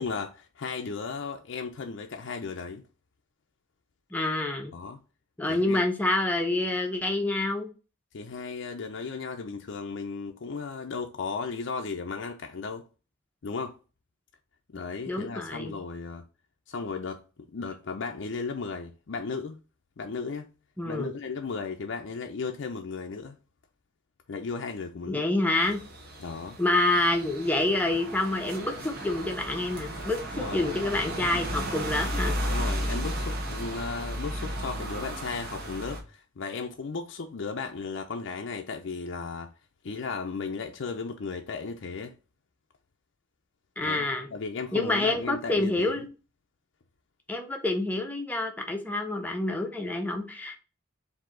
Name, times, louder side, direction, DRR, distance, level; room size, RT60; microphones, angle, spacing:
voice 1, 0.0-2.8 4.7-5.0 5.5-5.8 8.1-12.9 13.4-13.8 14.7-16.2 16.7-17.2 17.5-19.6 20.0-20.5 20.8-23.4 24.3-25.2 26.2-26.6 30.3-30.7 32.5-39.5 39.8-42.1 43.8-46.0, left 4 dB, 65° left, 0.5 m, -35 dB
voice 2, 4.1-4.8 5.4-7.7 15.1-15.7 20.8-21.1 25.1-25.8 26.6-32.4 43.8-44.3 44.7-46.1 47.3-50.6, left 2 dB, 10° left, 0.7 m, -27 dB
sound 1, 25.6-36.0, equal, 50° right, 1.2 m, -34 dB
4.7 x 2.7 x 3.7 m
head